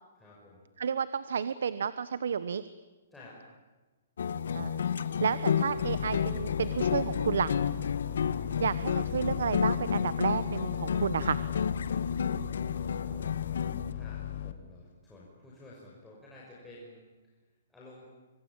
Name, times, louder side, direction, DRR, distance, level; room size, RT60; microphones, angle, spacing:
voice 1, 0.2-0.6 3.1-3.3 12.6-13.3 13.9-17.1 17.7-18.1, left 2 dB, 5° left, -6 dB, 5.7 m, -52 dB
voice 2, 0.8-2.6 4.5-7.5 8.6-11.4, right 7 dB, 75° right, 15 dB, 1.1 m, -31 dB
sound 1, 4.2-13.9, left 7 dB, 75° left, 1.4 m, -31 dB
sound 2, 5.8-14.5, left 11 dB, 50° left, 2.1 m, -38 dB
26.0 x 25.0 x 8.9 m, 1.2 s
hypercardioid pair, 160°, 0 cm